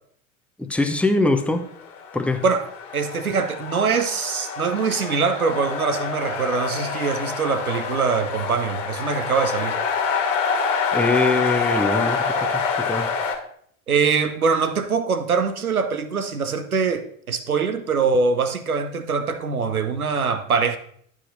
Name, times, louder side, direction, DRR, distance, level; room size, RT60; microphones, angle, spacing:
voice 1, 0.6-1.7 2.1-2.4 10.9-13.2, left 2 dB, 5° left, 0.6 m, -23 dB
sound 1, 1.8-13.4, left 5 dB, 60° left, 1.5 m, -26 dB
voice 2, 2.9-9.8 13.9-20.8, right 5 dB, 90° right, 0.7 m, -23 dB
11.0 x 4.9 x 2.6 m
figure-of-eight pair, 75°, 42 cm